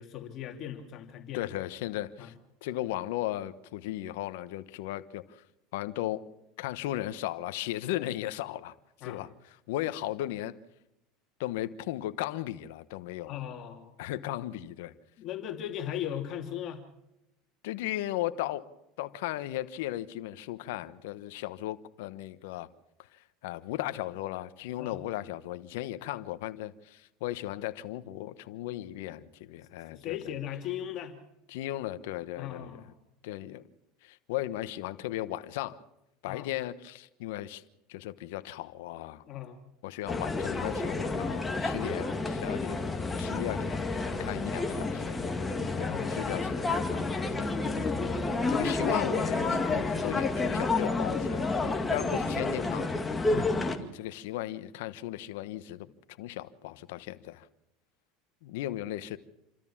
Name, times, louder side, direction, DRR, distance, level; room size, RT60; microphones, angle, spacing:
voice 1, 0.0-1.4 2.2-2.3 9.0-9.2 13.3-13.9 15.2-16.8 24.8-25.0 29.9-31.2 32.4-32.9 36.3-36.5 39.2-39.6 45.8-46.2 53.3-53.5, left 10 dB, 45° left, 2.7 m, -38 dB
voice 2, 1.3-2.3 2.6-5.2 5.7-6.2 6.6-8.7 9.0-10.5 11.4-13.3 14.0-14.9 17.6-18.6 19.0-22.7 23.4-30.3 31.5-32.7 33.2-33.6 34.0-35.8 36.2-37.6 37.9-39.2 39.8-42.8 43.1-45.2 45.8-47.5 48.5-53.0 53.8-55.9 56.2-57.5 58.4-59.2, left 14 dB, 80° left, 1.1 m, -36 dB
sound 1, 40.1-53.8, left 3 dB, 15° left, 2.0 m, -30 dB
28.0 x 13.5 x 7.3 m
supercardioid pair, 120°, 0 cm